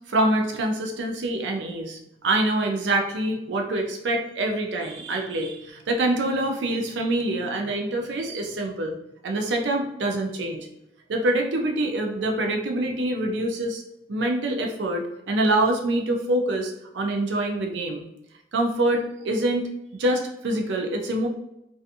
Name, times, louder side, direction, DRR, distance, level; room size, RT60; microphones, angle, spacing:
voice 1, 0.1-9.0 9.2-10.7 11.1-13.8 14.1-18.0 18.5-19.7 20.0-21.3, right 1 dB, 75° right, 2 dB, 0.5 m, -25 dB
2.6 x 2.3 x 2.4 m, 0.85 s
head